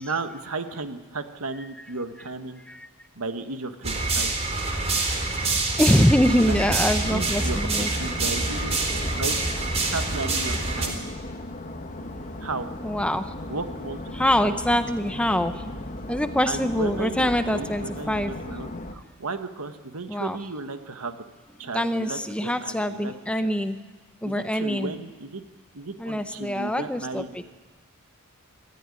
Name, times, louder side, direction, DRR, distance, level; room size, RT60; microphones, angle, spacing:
voice 1, 0.0-2.6 3.1-4.3 6.5-6.6 7.1-7.6 7.9-8.8 9.2-9.4 9.9-11.1 12.4-12.7 13.5-14.5 15.3-15.4 16.5-21.2 21.6-23.1 24.2-25.4 25.7-27.4, right 3 dB, 85° right, 8 dB, 1.5 m, -34 dB
sound 1, 3.8-10.9, right 3 dB, 30° right, 3.7 m, -26 dB
sound 2, 5.8-18.9, left 1 dB, 35° left, 1.4 m, -37 dB
voice 2, 5.8-7.9 12.8-13.3 14.1-15.6 16.1-18.3 20.1-20.4 21.7-23.8 24.2-24.9 26.0-27.5, equal, 5° left, 9 dB, 0.8 m, -24 dB
24.0 x 14.0 x 9.9 m, 1.3 s
head